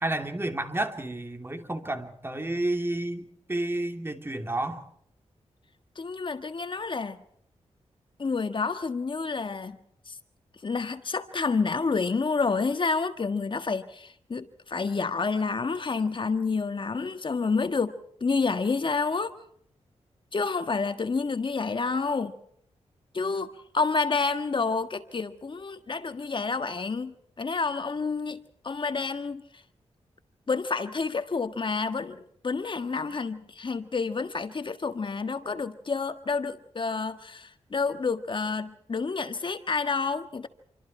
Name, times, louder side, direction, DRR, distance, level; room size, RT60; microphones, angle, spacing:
voice 1, 0.0-4.8, right 1 dB, 20° right, 6 dB, 3.0 m, -31 dB
voice 2, 5.9-7.2 8.2-9.8 10.1-10.2 10.6-19.3 20.3-22.3 23.1-29.6 30.5-40.5, left 4 dB, 45° left, 8 dB, 1.6 m, -29 dB
28.0 x 24.5 x 4.5 m, 0.67 s
wide cardioid pair, 90°, 12 cm